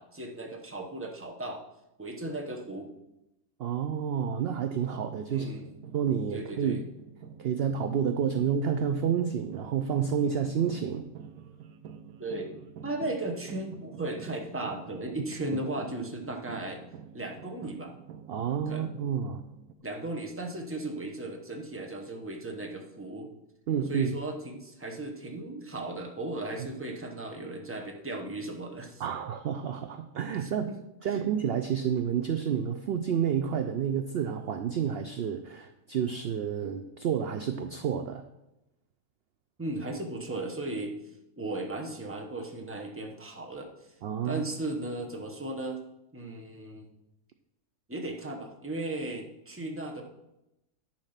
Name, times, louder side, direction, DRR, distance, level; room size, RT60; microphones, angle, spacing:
voice 1, 0.0-1.6 2.0-2.9 5.3-5.7 6.3-6.8 12.2-12.5 12.8-16.8 17.1-17.9 18.7-18.8 19.8-23.3 23.9-29.0 30.4-30.8 31.1-31.2 39.6-41.0 41.4-43.7 44.2-45.8 46.1-46.9 47.9-50.0, right 2 dB, 10° right, 1 dB, 0.9 m, -36 dB
voice 2, 3.6-5.5 5.9-6.8 7.4-11.1 18.3-19.4 23.7-24.1 29.0-30.7 31.0-38.2 44.0-44.4, right 8 dB, 60° right, 8 dB, 0.6 m, -29 dB
sound 1, 4.8-19.7, right 7 dB, 90° right, 1.1 m, -48 dB
10.5 x 4.4 x 5.8 m, 0.90 s
omnidirectional pair, 1.4 m